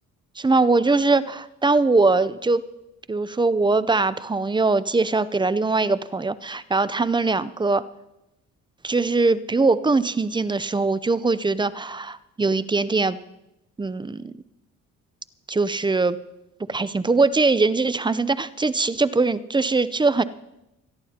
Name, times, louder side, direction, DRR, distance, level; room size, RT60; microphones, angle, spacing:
voice 1, 0.4-2.6 3.1-7.8 8.8-13.2 13.8-14.3 15.5-16.2 16.7-20.2, right 3 dB, 15° right, 14 dB, 0.5 m, -21 dB
25.5 x 11.0 x 2.9 m, 0.90 s
cardioid pair, 90°, 30 cm